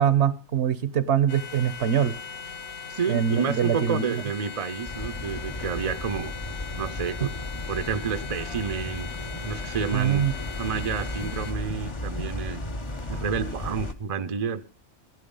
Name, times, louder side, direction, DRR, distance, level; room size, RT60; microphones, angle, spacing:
voice 1, 0.0-2.1 3.1-4.2 7.2-7.3 9.9-10.3, right 8 dB, 65° right, 15 dB, 1.2 m, -23 dB
sound 1, 1.3-11.5, left 6 dB, 65° left, 1.5 m, -39 dB
voice 2, 2.9-6.3 6.8-7.3 7.7-9.1 9.4-10.3 10.6-12.6 13.1-14.6, right 6 dB, 35° right, 10 dB, 0.7 m, -30 dB
sound 2, 4.9-13.9, left 1 dB, 30° left, 0.8 m, -35 dB
15.5 x 11.0 x 5.4 m, 0.37 s
omnidirectional pair, 1.2 m